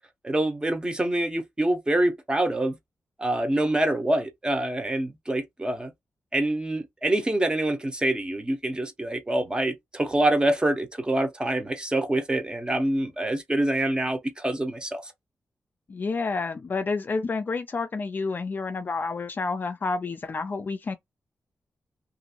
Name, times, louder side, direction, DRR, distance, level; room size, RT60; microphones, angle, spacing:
voice 1, 0.2-2.8 3.2-5.9 6.3-15.1, right 1 dB, 20° right, 0.7 m, -26 dB
voice 2, 15.9-21.0, left 4 dB, 40° left, 0.3 m, -29 dB
2.8 x 2.5 x 2.8 m
wide cardioid pair, 100°, 5 cm